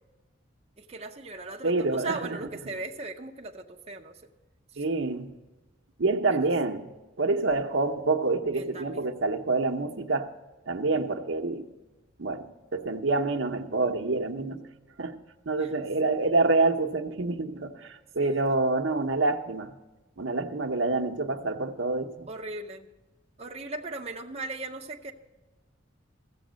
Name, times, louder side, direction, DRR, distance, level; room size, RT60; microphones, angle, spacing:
voice 1, 0.8-4.2 4.7-4.8 6.4-6.5 8.5-9.1 15.6-15.7 18.2-18.4 22.3-22.9 23.4-25.1, right 3 dB, 35° right, 0.6 m, -38 dB
voice 2, 1.6-2.4 2.6-2.7 4.8-5.3 6.0-10.3 10.7-11.7 12.2-14.7 15.0-15.2 15.5-19.8 20.2-22.3, right 3 dB, 75° right, 0.8 m, -27 dB
15.0 x 7.7 x 6.3 m
head